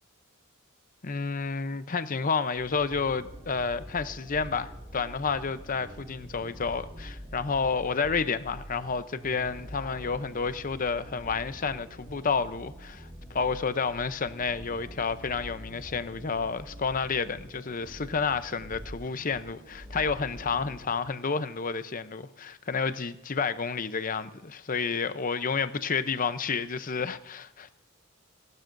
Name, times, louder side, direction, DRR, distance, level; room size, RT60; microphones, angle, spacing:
voice 1, 1.0-27.7, left 5 dB, 40° left, 0.7 m, -30 dB
sound 1, 2.6-21.0, equal, 25° right, 2.2 m, -45 dB
30.0 x 12.0 x 2.6 m
head